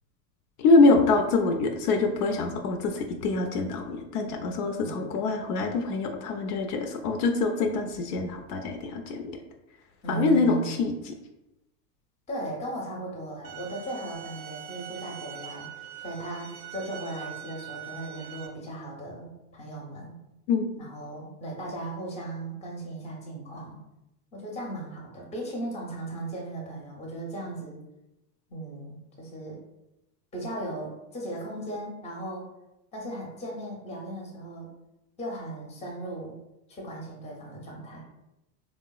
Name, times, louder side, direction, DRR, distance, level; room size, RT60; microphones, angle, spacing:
voice 1, 0.6-9.3 10.1-11.1 20.5-20.8, left 3 dB, 65° left, 4 dB, 0.5 m, -25 dB
voice 2, 10.0-10.8 12.3-15.7 16.0-20.2 20.8-23.8 24.3-27.8 28.5-29.6 30.3-32.5 32.9-34.7 35.2-36.4 36.7-38.0, right 2 dB, 15° left, -1 dB, 0.6 m, -37 dB
sound 1, 13.4-18.5, right 10 dB, 80° right, 0.6 m, -42 dB
3.3 x 2.0 x 2.3 m, 0.92 s
hypercardioid pair, 95°, 50 cm